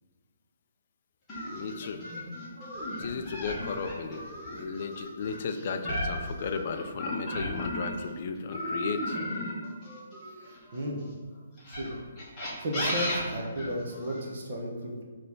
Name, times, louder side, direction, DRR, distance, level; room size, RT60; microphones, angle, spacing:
sound 1, 1.3-8.1 8.5-10.9 11.6-14.2, left 1 dB, 5° left, 1.2 m, -35 dB
voice 1, 1.5-2.0 3.0-9.2, left 5 dB, 30° left, 7 dB, 0.4 m, -35 dB
voice 2, 10.3-11.0 11.7-11.9 12.6-15.0, equal, 35° right, -1 dB, 1.2 m, -34 dB
6.8 x 3.3 x 5.4 m, 1.5 s
hypercardioid pair, 180°, 0 cm